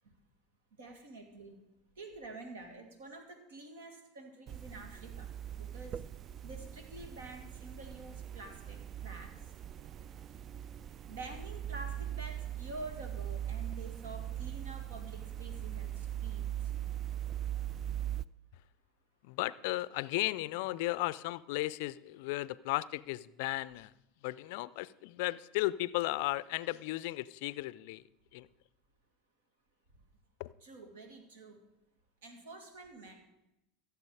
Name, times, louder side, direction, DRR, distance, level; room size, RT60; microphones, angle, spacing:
voice 1, 0.8-1.6 2.0-6.0 6.4-9.4 11.1-16.7 30.6-31.6 32.2-33.2, right 2 dB, 75° right, 2.1 m, -48 dB
sound 1, 4.5-18.2, right 11 dB, 40° right, 0.3 m, -40 dB
voice 2, 19.2-23.9 24.2-28.0 28.3-28.5 30.4-30.5, left 18 dB, 65° left, 0.4 m, -35 dB
14.5 x 7.0 x 4.9 m
hypercardioid pair, 85°, 0 cm